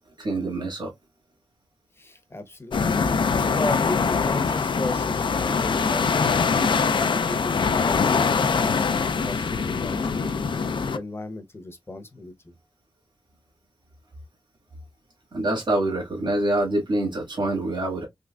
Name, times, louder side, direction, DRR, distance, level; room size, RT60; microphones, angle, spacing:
voice 1, 0.2-0.9 15.3-18.0, right 1 dB, 60° right, 1.7 m, -25 dB
voice 2, 2.0-6.6 6.9-10.3 10.9-12.5, left 1 dB, 30° left, 0.8 m, -36 dB
sound 1, 2.7-11.0, left 5 dB, 65° left, 0.4 m, -23 dB
3.7 x 3.1 x 2.2 m
wide cardioid pair, 100°, 9 cm